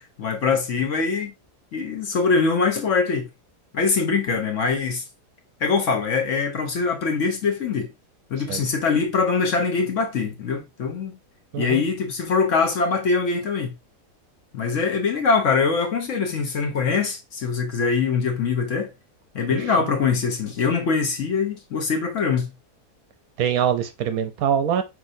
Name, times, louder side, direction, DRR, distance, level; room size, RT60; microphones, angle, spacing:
voice 1, 0.0-1.3 1.7-3.3 3.7-5.0 5.6-7.9 8.3-11.1 11.6-13.7 14.5-18.9 19.3-22.5, left 5 dB, 55° left, 1.0 m, -23 dB
voice 2, 19.5-19.9 23.4-24.8, right 8 dB, 70° right, 1.0 m, -24 dB
5.8 x 3.1 x 2.5 m
omnidirectional pair, 1.7 m